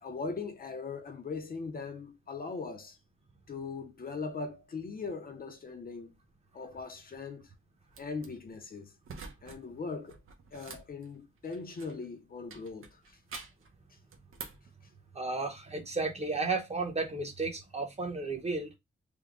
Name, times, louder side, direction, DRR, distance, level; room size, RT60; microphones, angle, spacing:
voice 1, 0.0-3.0 3.5-6.1 6.5-7.5 8.0-8.9 9.4-10.2 10.5-13.2, left 4 dB, 45° left, 0.6 m, -40 dB
Tape Cassette Eject, 7.9-8.3 9.0-9.6 9.9-12.1 12.5-13.7 14.1-14.7, right 4 dB, 85° right, 0.8 m, -47 dB
voice 2, 15.1-18.7, right 3 dB, 30° right, 0.9 m, -33 dB
3.5 x 2.2 x 3.6 m
wide cardioid pair, 160°, 21 cm